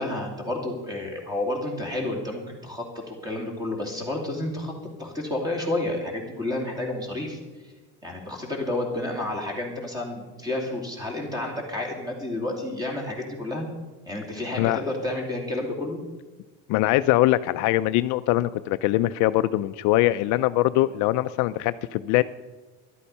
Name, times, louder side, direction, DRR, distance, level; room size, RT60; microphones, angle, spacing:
voice 1, 0.0-4.7 5.0-7.4 8.0-13.7 14.1-16.0, left 1 dB, 10° right, 1 dB, 2.6 m, -30 dB
voice 2, 16.7-22.2, left 16 dB, 65° left, 13 dB, 0.5 m, -22 dB
13.0 x 11.5 x 5.4 m, 1.2 s
cardioid pair, 170°, 33 cm